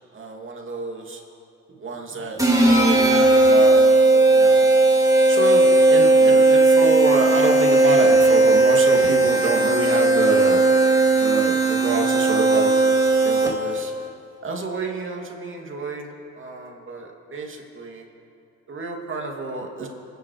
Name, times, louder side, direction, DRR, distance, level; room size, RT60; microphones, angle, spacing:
voice 1, 0.1-1.2 1.8-3.8 4.1-4.7 5.3-10.6 11.2-12.7 13.2-13.9 14.4-16.1 16.4-18.0 18.7-19.9, right 3 dB, 40° right, 1 dB, 2.7 m, -28 dB
sound 1, 2.4-13.8, right 2 dB, 10° right, 2.5 m, -16 dB
26.0 x 9.9 x 4.9 m, 2.6 s
cardioid pair, 90°, 30 cm